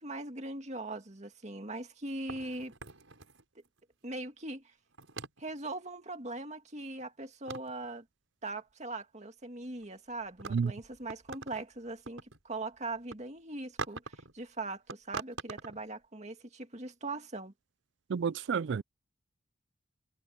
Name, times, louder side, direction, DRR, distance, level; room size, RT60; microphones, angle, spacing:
voice 1, 0.0-2.7 4.0-4.7 5.4-8.1 8.4-17.5, right 2 dB, 35° right, 2.2 m, -40 dB
sound 1, 2.3-3.8 4.9-5.6 7.0-7.1 7.5-7.9 9.7-9.8 10.2-11.6 11.9-12.4 12.9-13.2 13.8-14.3 14.9-15.8, right 4 dB, 80° right, 5.5 m, -43 dB
voice 2, 18.1-18.8, right 6 dB, 60° right, 0.4 m, -30 dB
head